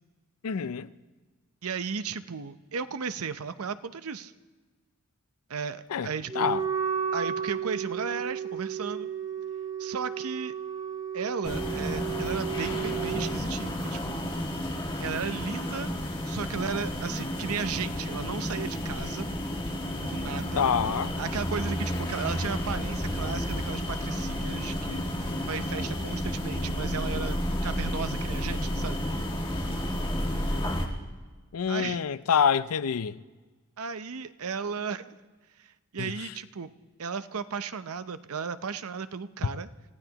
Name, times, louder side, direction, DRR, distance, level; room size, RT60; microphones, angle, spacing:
voice 1, 0.4-0.9 5.9-6.6 20.6-21.1 31.5-33.2 36.0-36.3, left 7 dB, 85° left, 0.5 m, -27 dB
voice 2, 1.6-4.3 5.5-6.6 7.1-9.1 9.8-10.5 11.1-14.2 15.0-15.9 16.3-19.3 20.0-20.7 21.2-25.1 25.5-27.4 27.6-29.0 31.7-32.0 33.8-35.1 35.9-36.7 37.0-39.7, right 5 dB, 80° right, 0.7 m, -35 dB
Wind instrument woodwind instrument, 6.3-13.4, right 7 dB, 20° right, 1.4 m, -33 dB
sound 1, 11.4-30.9, equal, 25° left, 1.6 m, -31 dB
28.0 x 15.5 x 2.9 m
head